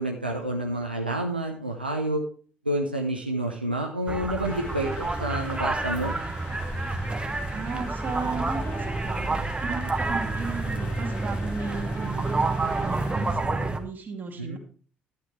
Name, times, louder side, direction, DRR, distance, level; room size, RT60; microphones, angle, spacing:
voice 1, 0.0-2.2 2.6-6.1 14.4-14.6, right 1 dB, 90° right, 1 dB, 0.8 m, -29 dB
sound 1, 4.1-13.8, right 3 dB, 20° right, 1.3 m, -29 dB
sound 2, 4.4-13.4, left 4 dB, 50° left, 2.6 m, -45 dB
voice 2, 7.5-14.6, right 4 dB, 35° right, 3 dB, 2.6 m, -35 dB
11.5 x 8.6 x 3.3 m, 0.41 s
figure-of-eight pair, 50°, 5 cm